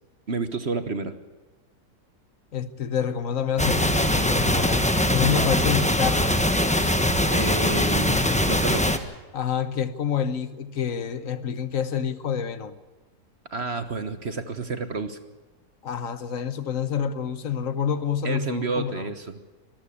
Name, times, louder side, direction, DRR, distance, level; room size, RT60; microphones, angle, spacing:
voice 1, 0.3-1.1 5.2-5.5 7.3-9.0 13.5-15.2 18.2-19.4, right 3 dB, 45° right, 1.3 m, -30 dB
voice 2, 2.5-6.5 9.3-12.8 15.8-19.1, left 7 dB, 55° left, 1.4 m, -28 dB
sound 1, 3.6-9.0, left 1 dB, 5° left, 1.0 m, -22 dB
24.0 x 14.0 x 8.5 m
omnidirectional pair, 1.7 m